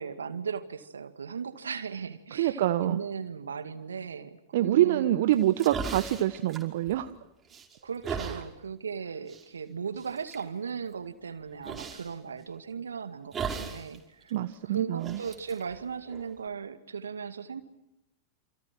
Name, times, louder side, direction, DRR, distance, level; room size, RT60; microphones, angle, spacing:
voice 1, 0.0-5.1 7.8-14.3 14.6-17.6, right 6 dB, 80° right, 10 dB, 2.1 m, -37 dB
voice 2, 2.4-3.0 4.5-7.1 8.2-8.4 14.3-15.2, right 13 dB, 60° right, 10 dB, 1.1 m, -26 dB
sound 1, 5.3-7.2 7.5-8.4 9.3-9.4 10.0-10.4 11.6-12.1 13.3-13.9 14.2-14.3 15.0-16.5, right 6 dB, 25° right, 5.4 m, -37 dB
29.0 x 28.0 x 6.1 m, 0.85 s
figure-of-eight pair, 95°, 0 cm